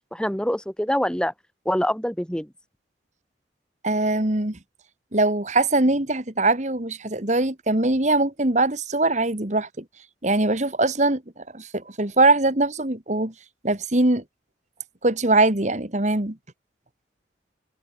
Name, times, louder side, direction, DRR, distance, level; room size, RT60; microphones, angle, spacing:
voice 1, 0.1-1.3 1.6-2.5, equal, 5° left, 1.6 m, -25 dB
voice 2, 3.8-4.6 5.1-9.8 10.2-13.3 13.6-14.2 15.0-16.4, right 2 dB, 40° right, 2.0 m, -22 dB
head